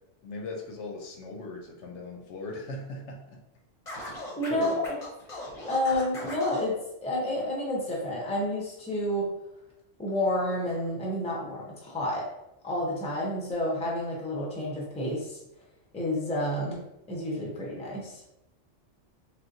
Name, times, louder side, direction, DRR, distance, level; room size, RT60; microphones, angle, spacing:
voice 1, 0.2-3.4 4.0-4.2 4.5-4.8, left 3 dB, 70° left, 1 dB, 0.9 m, -39 dB
Scratching (performance technique), 3.9-6.7, left 1 dB, 35° left, 0.8 m, -39 dB
voice 2, 4.4-4.8 5.7-9.3 10.0-12.3 12.6-15.4 15.9-16.8 17.1-18.2, left 1 dB, 5° left, -3 dB, 0.6 m, -30 dB
3.7 x 2.3 x 2.6 m, 0.88 s
omnidirectional pair, 1.3 m